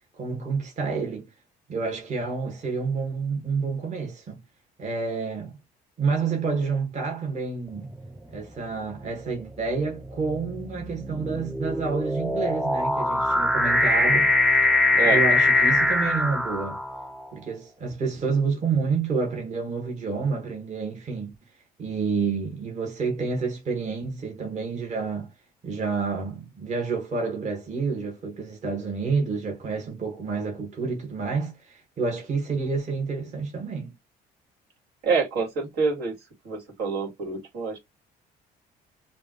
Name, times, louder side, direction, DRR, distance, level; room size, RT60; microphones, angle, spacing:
voice 1, 0.2-1.3 1.7-4.4 4.8-5.5 6.0-7.9 8.3-14.3 15.0-16.8 17.3-21.3 21.8-25.3 25.6-33.9, right 4 dB, 45° right, 1.7 m, -29 dB
sound 1, 7.8-8.2 9.0-17.2, left 2 dB, 5° right, 0.4 m, -23 dB
voice 2, 14.9-15.2 35.0-36.1 36.4-37.8, right 5 dB, 75° right, 2.2 m, -26 dB
5.2 x 2.5 x 3.1 m
cardioid pair, 110°, 17 cm